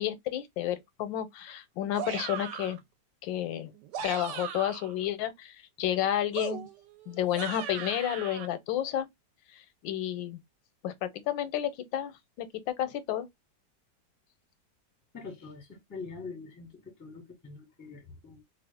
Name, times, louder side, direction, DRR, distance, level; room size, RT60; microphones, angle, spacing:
voice 1, 0.0-2.8 3.2-3.7 4.0-6.7 7.1-9.1 9.8-10.4 10.8-13.3, left 11 dB, 85° left, 1.3 m, -31 dB
sound 1, 1.9-2.8 3.7-4.9 6.3-8.5, right 8 dB, 75° right, 1.2 m, -38 dB
voice 2, 15.1-18.4, left 4 dB, 15° left, 0.6 m, -44 dB
3.0 x 2.3 x 3.5 m
omnidirectional pair, 2.0 m